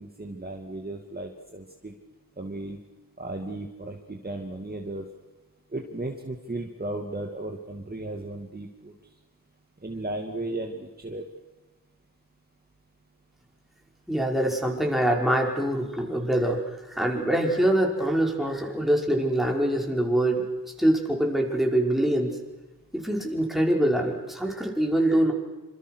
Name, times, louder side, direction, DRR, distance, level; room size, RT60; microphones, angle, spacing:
voice 1, 0.0-1.9 2.4-2.8 3.2-5.0 5.7-8.9 9.8-11.2, right 2 dB, 25° right, 2 dB, 2.6 m, -35 dB
voice 2, 14.1-16.6 16.9-22.4 22.9-25.3, right 1 dB, ahead, 0 dB, 5.5 m, -24 dB
27.5 x 26.5 x 6.5 m, 1.2 s
wide cardioid pair, 100°, 36 cm